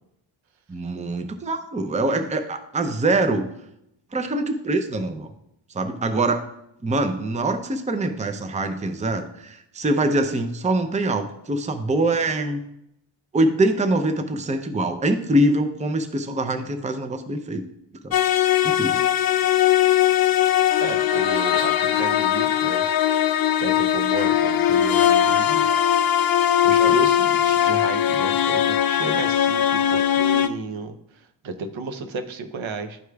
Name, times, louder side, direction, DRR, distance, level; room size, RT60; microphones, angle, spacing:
voice 1, 0.7-3.5 4.1-5.3 5.7-6.4 6.8-12.6 13.3-17.6 18.0-18.2 18.6-19.0 26.8-26.9, right 2 dB, 15° right, 7 dB, 0.5 m, -24 dB
sound 1, 18.1-30.5, left 11 dB, 50° left, 0.5 m, -20 dB
voice 2, 20.8-22.8 23.6-25.7 26.6-29.6 29.9-33.0, right 3 dB, 75° right, 8 dB, 0.8 m, -32 dB
12.0 x 4.8 x 2.3 m, 0.80 s
wide cardioid pair, 100°, 47 cm